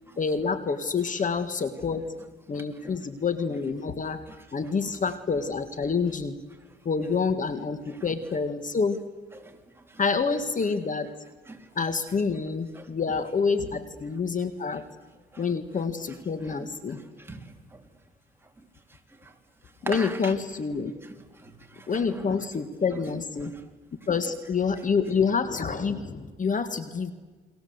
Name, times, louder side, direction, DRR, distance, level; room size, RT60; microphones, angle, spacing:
voice 1, 0.2-2.1 2.5-4.2 4.5-6.4 6.9-9.0 10.0-11.1 11.8-14.9 15.4-17.0 19.8-20.9 21.9-23.6 24.1-27.1, left 5 dB, 40° left, 1.8 m, -27 dB
voice 2, 2.5-3.0 4.3-4.7 7.9-8.1 9.4-9.6 9.9-10.0 11.5-11.6 12.8-12.9 15.3-15.5 16.4-17.8 19.2-19.3 19.8-20.3 21.0-21.1 21.4-22.4 23.4-23.6, right 2 dB, 10° right, 3.7 m, -42 dB
29.5 x 22.5 x 8.1 m
cardioid pair, 90°, 20 cm